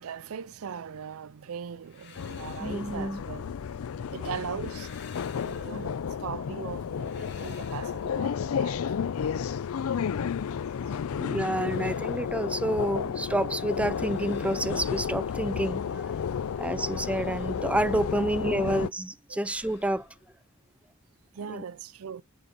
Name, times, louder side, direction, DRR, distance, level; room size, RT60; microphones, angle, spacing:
voice 1, 0.0-3.6 4.1-4.9 5.4-8.8 10.9-11.0 11.6-11.8 18.2-18.3 18.5-18.8 19.3-19.5 21.3-22.2, right 7 dB, 85° right, 0.5 m, -40 dB
sound 1, 1.7-3.9 4.3-6.3 6.7-8.6 11.0-13.2 13.5-15.7 16.1-18.6 18.9-21.3, left 4 dB, 55° left, 3.1 m, -53 dB
sound 2, 2.2-18.9, left 7 dB, 90° left, 0.4 m, -32 dB
voice 2, 2.6-3.2 11.2-16.2 16.6-20.1 21.5-21.6, right 1 dB, 5° right, 0.4 m, -29 dB
8.7 x 5.4 x 5.2 m
head